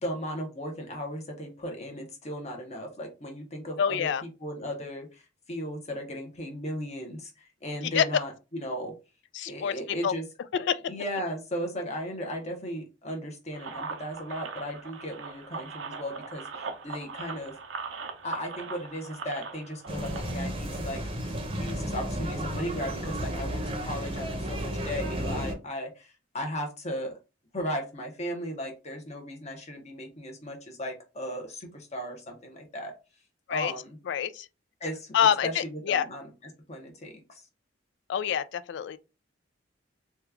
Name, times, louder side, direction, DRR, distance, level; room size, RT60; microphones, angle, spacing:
voice 1, 0.0-4.1 4.4-5.2 5.5-8.9 9.5-10.2 10.9-17.5 18.2-21.0 21.6-27.2 27.5-32.9 33.5-34.0 34.8-35.1 35.4-36.3 36.7-37.4, equal, 35° left, 0.9 m, -36 dB
voice 2, 3.8-4.2 7.9-8.2 9.3-10.1 10.5-10.9 33.5-33.7 34.1-34.5 35.1-36.1 38.1-39.0, left 8 dB, 65° left, 0.3 m, -26 dB
sound 1, 13.5-20.4, right 4 dB, 90° right, 0.6 m, -40 dB
sound 2, 19.9-25.5, equal, 30° right, 0.7 m, -33 dB
2.9 x 2.3 x 3.4 m
head